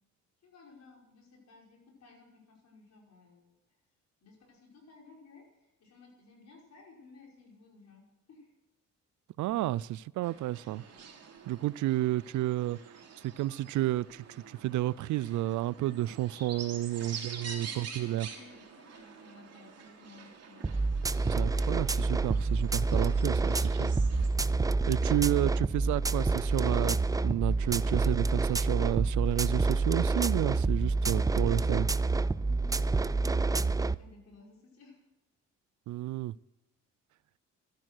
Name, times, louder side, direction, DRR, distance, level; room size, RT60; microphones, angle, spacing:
voice 1, 0.4-3.5 4.2-5.4 5.8-8.0 8.3-8.5 16.9-17.2 17.4-20.7 32.4-35.0, left 3 dB, 60° left, 5.7 m, -56 dB
voice 2, 9.4-10.8 11.5-12.8 13.2-18.3 21.2-23.9 24.9-27.0 27.2-31.9 35.9-36.3, right 15 dB, 75° right, 0.4 m, -31 dB
sound 1, 10.2-24.3, right 6 dB, 55° right, 3.1 m, -47 dB
sound 2, 20.6-34.0, right 3 dB, 10° right, 0.3 m, -28 dB
13.0 x 10.5 x 6.3 m
cardioid pair, 90°, 30 cm